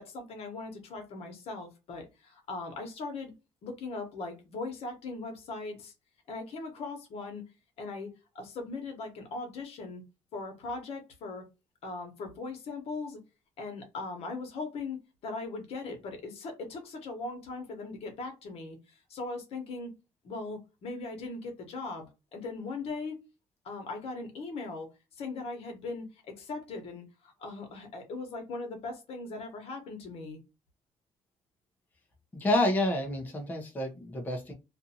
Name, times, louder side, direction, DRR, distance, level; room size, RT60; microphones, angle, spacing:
voice 1, 0.0-3.3 3.6-5.9 6.3-7.4 7.8-8.1 8.3-10.0 10.3-11.5 11.8-13.2 13.6-20.0 20.2-23.2 23.6-24.9 25.2-30.4, left 3 dB, 65° left, 1.0 m, -39 dB
voice 2, 32.3-34.5, left 1 dB, 15° left, 0.6 m, -29 dB
2.5 x 2.4 x 2.7 m
cardioid pair, 140°, 11 cm